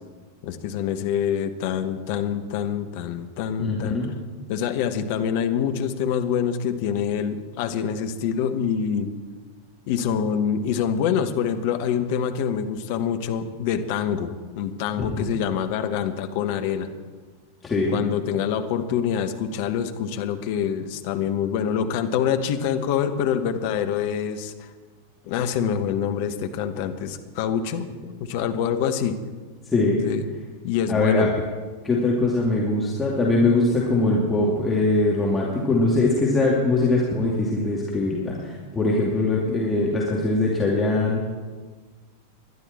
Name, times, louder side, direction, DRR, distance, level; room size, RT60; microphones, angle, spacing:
voice 1, 0.4-4.0 4.5-9.1 9.9-16.9 17.9-24.7 25.3-27.9 28.2-29.2 30.0-30.2 30.6-31.3, left 8 dB, 50° left, 7 dB, 1.2 m, -25 dB
voice 2, 3.6-4.1 15.0-15.3 17.6-18.0 29.7-30.0 30.9-31.3 31.8-41.2, left 2 dB, 15° left, -4 dB, 2.5 m, -22 dB
20.5 x 11.5 x 4.4 m, 1.4 s
figure-of-eight pair, 90°, 0 cm